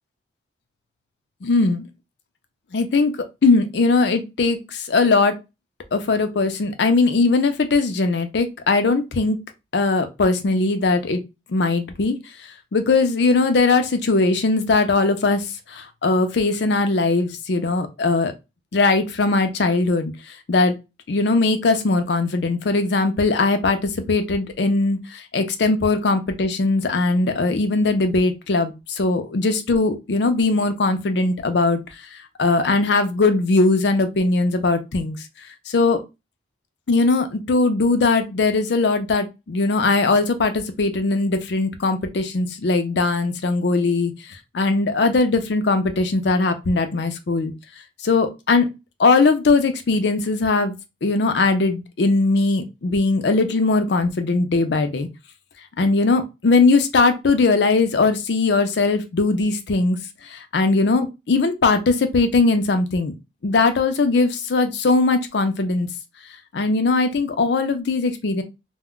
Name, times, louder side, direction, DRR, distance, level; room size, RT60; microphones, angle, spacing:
voice 1, 1.4-1.8 2.7-3.1 3.4-5.3 5.9-9.4 9.7-11.2 11.5-12.2 12.7-18.3 18.7-20.1 20.5-20.7 21.1-31.8 32.4-35.2 35.7-36.0 36.9-44.1 44.5-47.5 48.0-48.7 49.0-50.7 51.0-55.1 55.8-60.0 60.2-63.1 63.4-65.9 66.5-68.4, left 3 dB, 65° left, 0.5 m, -20 dB
2.2 x 2.1 x 3.6 m
head